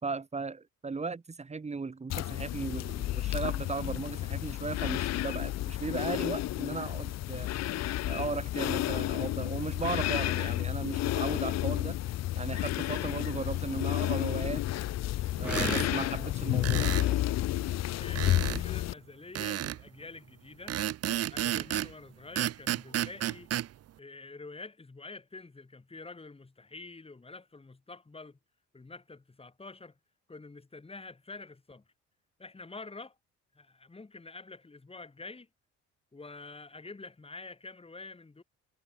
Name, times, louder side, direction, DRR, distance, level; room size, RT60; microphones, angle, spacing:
voice 1, 0.0-7.5 8.1-12.0 12.4-14.6 15.4-17.0, right 4 dB, 20° right, 1.9 m, -36 dB
sound 1, 2.1-18.9, left 14 dB, 60° left, 0.8 m, -31 dB
sound 2, 12.8-18.9, right 1 dB, 5° right, 0.7 m, -43 dB
sound 3, 15.4-15.9 16.6-17.1 18.2-18.6 19.4-19.8 20.7-21.9 22.4-23.7, right 12 dB, 55° right, 1.0 m, -32 dB
voice 2, 17.9-20.8 21.3-23.5 24.0-28.4 28.7-29.9 30.3-31.8 32.4-33.2 33.5-35.5 36.1-38.4, left 3 dB, 20° left, 4.2 m, -47 dB
cardioid pair, 85°, 29 cm